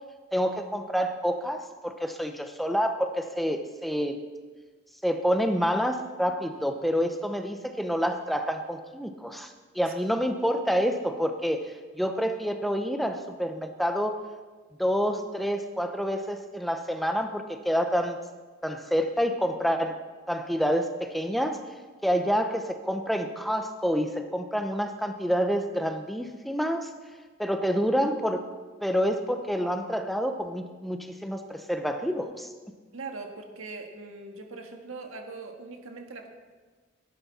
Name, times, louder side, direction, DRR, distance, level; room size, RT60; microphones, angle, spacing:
voice 1, 0.3-4.2 5.0-14.2 14.8-18.2 18.6-20.0 20.3-21.6 22.0-26.9 27.4-28.4 28.8-32.5, equal, ahead, 6 dB, 0.8 m, -28 dB
voice 2, 32.9-36.3, right 3 dB, 85° right, 3 dB, 1.7 m, -41 dB
18.0 x 11.0 x 4.2 m, 1.4 s
head